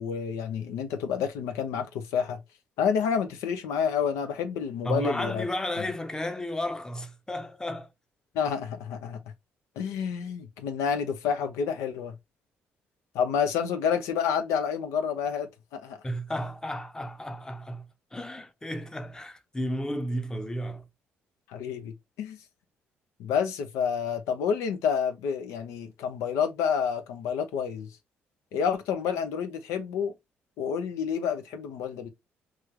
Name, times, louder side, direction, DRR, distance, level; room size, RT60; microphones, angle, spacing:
voice 1, 0.0-2.4 2.8-5.4 8.3-9.2 9.8-12.1 13.1-16.0 21.5-22.4 23.2-27.9 28.5-30.1 30.6-32.1, left 7 dB, 85° left, 0.5 m, -29 dB
voice 2, 4.8-7.9 16.0-20.8, equal, 15° left, 0.6 m, -33 dB
3.0 x 2.4 x 3.0 m
supercardioid pair, 65°, 5 cm